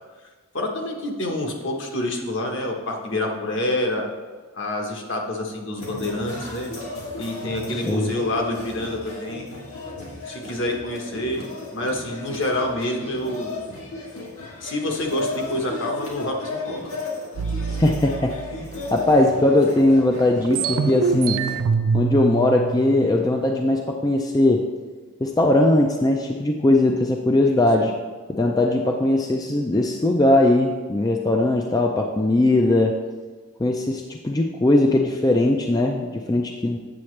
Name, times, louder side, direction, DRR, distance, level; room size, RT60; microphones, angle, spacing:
voice 1, 0.5-4.0 4.5-6.7 7.2-9.5 10.3-11.4 11.7-13.6 14.6-16.9 27.4-27.9, left 1 dB, 60° left, 1 dB, 1.2 m, -27 dB
sound 1, 5.8-21.6, left 3 dB, 85° left, 1.7 m, -35 dB
sound 2, 17.4-19.3 19.8-19.9 20.1-23.7, right 6 dB, 85° right, 0.4 m, -26 dB
voice 2, 17.7-21.4 21.9-24.6 25.2-27.9 28.3-32.9 33.6-36.8, left 1 dB, 20° left, 2 dB, 0.3 m, -20 dB
8.6 x 6.7 x 3.2 m, 1.4 s
head